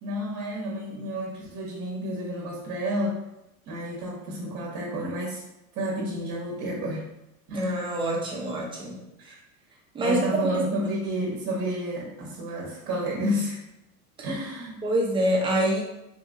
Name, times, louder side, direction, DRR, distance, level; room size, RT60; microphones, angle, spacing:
voice 1, 0.0-3.2 3.7-5.4 5.7-7.0 7.5-7.9 9.3-9.4 10.0-13.6 14.2-14.8, equal, 40° right, -3 dB, 0.8 m, -30 dB
voice 2, 7.5-9.0 9.9-10.2 10.4-10.6 14.2-14.3 14.8-15.8, right 1 dB, 10° right, -2 dB, 0.4 m, -26 dB
2.8 x 2.6 x 2.4 m, 0.89 s
supercardioid pair, 115°, 44 cm